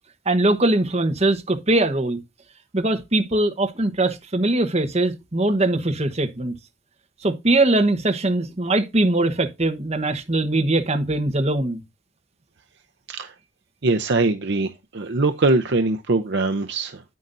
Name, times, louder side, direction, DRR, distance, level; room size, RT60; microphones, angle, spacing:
voice 1, 0.2-2.2 2.7-6.5 7.2-11.8, right 2 dB, 30° right, 1.1 m, -21 dB
voice 2, 13.8-17.0, right 3 dB, 55° right, 0.7 m, -22 dB
9.5 x 9.4 x 2.6 m
head